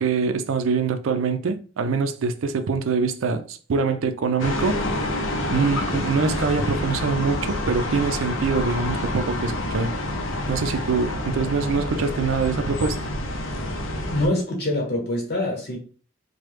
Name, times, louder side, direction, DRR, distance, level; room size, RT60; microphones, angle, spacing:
voice 1, 0.0-4.8 5.5-9.9 10.5-13.0, right 5 dB, 90° right, 0.4 m, -24 dB
sound 1, 4.4-14.3, left 1 dB, 80° left, 0.6 m, -28 dB
voice 2, 14.1-15.8, left 1 dB, 50° left, 1.1 m, -24 dB
3.1 x 2.2 x 3.2 m
head